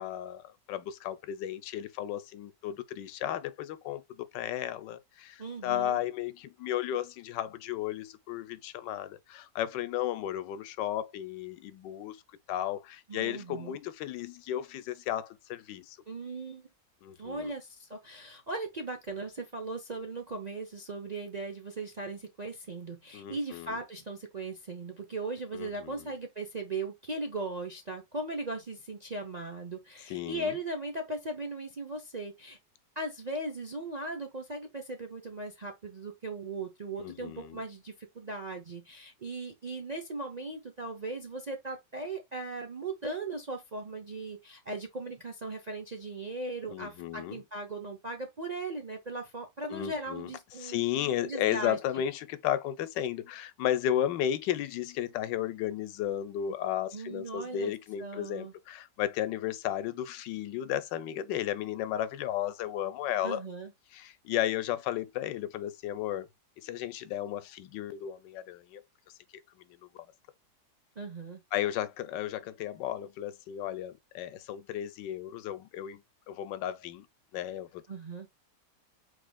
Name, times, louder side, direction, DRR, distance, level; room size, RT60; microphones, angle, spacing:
voice 1, 0.0-12.2 12.5-16.0 17.0-17.5 23.1-23.7 25.5-26.1 30.1-30.6 37.0-37.6 46.7-47.4 49.7-50.3 50.6-63.4 63.9-66.3 66.6-68.8 71.5-76.0 76.3-77.1 77.3-77.8, left 11 dB, 90° left, 1.3 m, -34 dB
voice 2, 5.4-6.0 13.1-13.8 16.1-16.6 17.2-32.6 33.0-50.8 51.2-52.0 56.9-57.7 58.0-58.5 63.2-63.7 71.0-71.4 77.9-78.3, right 2 dB, 55° right, 0.4 m, -38 dB
5.0 x 4.2 x 2.2 m
omnidirectional pair, 1.9 m